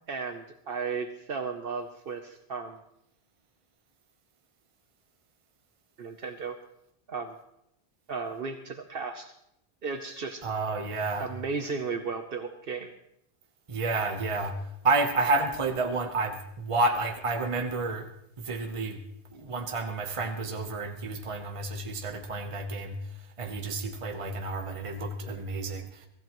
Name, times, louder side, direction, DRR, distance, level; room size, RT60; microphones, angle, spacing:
voice 1, 0.1-2.8 6.0-6.6 7.1-7.4 8.1-9.3 9.8-10.5 11.2-12.9, right 5 dB, 65° right, 6 dB, 1.1 m, -35 dB
voice 2, 10.4-11.3 13.7-14.6 14.8-18.1 18.4-19.0 19.3-23.0 23.4-26.1, right 3 dB, 30° right, 4 dB, 1.0 m, -30 dB
23.5 x 15.0 x 3.1 m, 0.80 s
omnidirectional pair, 1.1 m